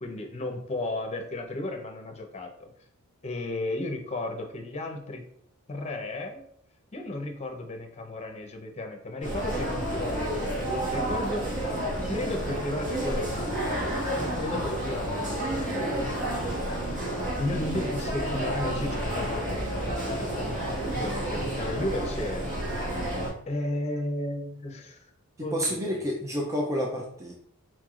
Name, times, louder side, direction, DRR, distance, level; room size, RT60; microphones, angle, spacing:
voice 1, 0.0-2.7 3.2-5.2 5.7-6.4 6.9-11.5 12.1-13.7 14.2-16.5 17.4-22.5 23.5-25.0 25.4-26.0, left 1 dB, 30° left, 3 dB, 0.7 m, -34 dB
sound 1, 9.2-23.3, right 1 dB, 35° right, 1.7 m, -30 dB
voice 2, 25.5-27.3, equal, 15° right, -1 dB, 0.5 m, -29 dB
4.5 x 4.5 x 2.4 m, 0.68 s
head